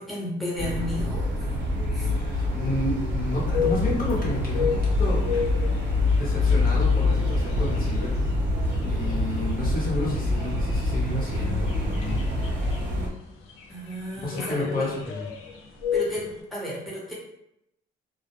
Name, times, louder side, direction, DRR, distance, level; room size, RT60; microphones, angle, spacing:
voice 1, 0.0-2.2 13.7-15.0 15.9-17.1, equal, ahead, -6 dB, 0.8 m, -34 dB
sound 1, 0.6-13.1, left 2 dB, 65° right, 0.7 m, -25 dB
voice 2, 2.1-5.2 6.1-8.2 8.8-12.2 14.2-15.3, left 2 dB, 45° left, -5 dB, 0.8 m, -31 dB
sound 2, 3.5-16.4, left 7 dB, 90° left, 0.4 m, -34 dB
sound 3, 8.7-12.2, right 1 dB, 35° right, 0.6 m, -47 dB
2.1 x 2.1 x 2.9 m, 0.81 s
cardioid pair, 90°, 20 cm